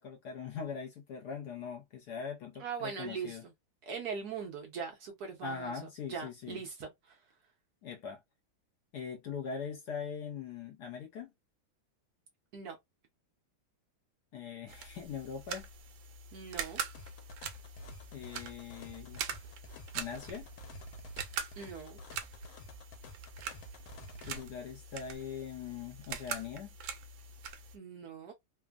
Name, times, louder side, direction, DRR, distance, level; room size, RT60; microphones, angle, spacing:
voice 1, 0.0-3.4 5.4-6.6 7.8-8.2 8.9-11.3 14.3-15.7 18.1-19.2 19.9-20.5 24.2-26.7, left 6 dB, 70° left, 1.0 m, -41 dB
voice 2, 2.6-3.4 3.9-5.7 6.1-7.2 12.5-12.8 16.3-16.8 21.6-22.0 27.7-28.3, right 6 dB, 65° right, 1.1 m, -41 dB
sound 1, 14.7-27.8, right 6 dB, 80° right, 1.3 m, -43 dB
sound 2, 16.9-24.4, equal, 90° left, 1.4 m, -50 dB
3.3 x 2.1 x 2.3 m
omnidirectional pair, 2.1 m